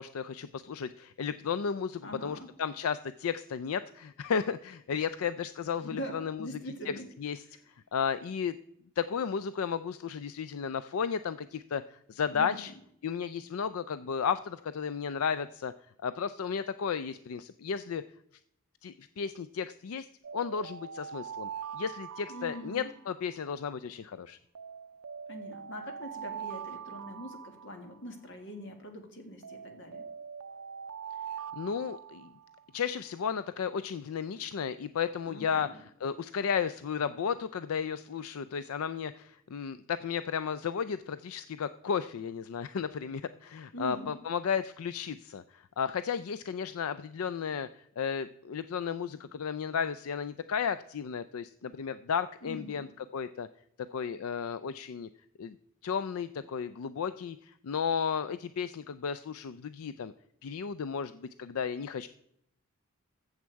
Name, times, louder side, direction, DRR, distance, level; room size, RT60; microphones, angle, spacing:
voice 1, 0.0-6.5 7.2-7.4 7.9-8.6 9.0-12.7 13.0-15.7 16.0-18.0 18.8-20.1 20.3-24.4 31.5-32.3 32.7-35.7 36.0-52.9 53.1-53.5 53.9-55.1 55.4-55.6 55.8-60.1 60.4-62.1, left 6 dB, 80° left, 14 dB, 0.4 m, -34 dB
voice 2, 2.0-2.5 5.8-7.1 7.5-7.6 12.3-12.7 22.3-22.9 25.3-30.0 35.3-35.8 43.7-44.2 52.4-52.9, equal, 60° left, 5 dB, 2.0 m, -43 dB
sound 1, 20.2-23.4 24.5-28.3 29.4-32.6, right 7 dB, 90° right, 0.5 m, -43 dB
14.5 x 7.3 x 4.6 m, 0.73 s
head